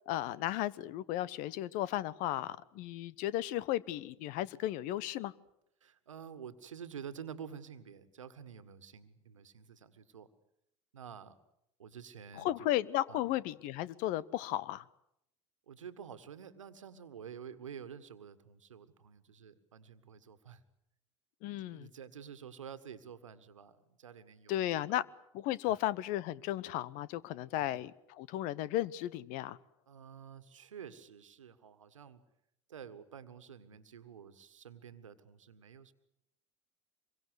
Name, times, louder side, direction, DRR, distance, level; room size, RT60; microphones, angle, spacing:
voice 1, 0.1-5.3 12.4-14.8 21.4-21.9 24.5-25.0 25.3-29.6, left 14 dB, 55° left, 20 dB, 1.1 m, -35 dB
voice 2, 5.8-10.3 10.9-11.4 11.8-12.7 13.1-13.2 15.7-20.6 21.6-25.0 25.6-25.8 27.6-27.7 29.9-32.2 32.7-35.9, right 7 dB, 85° right, 12 dB, 1.7 m, -49 dB
26.0 x 23.0 x 8.2 m, 0.78 s
hypercardioid pair, 75°, 16 cm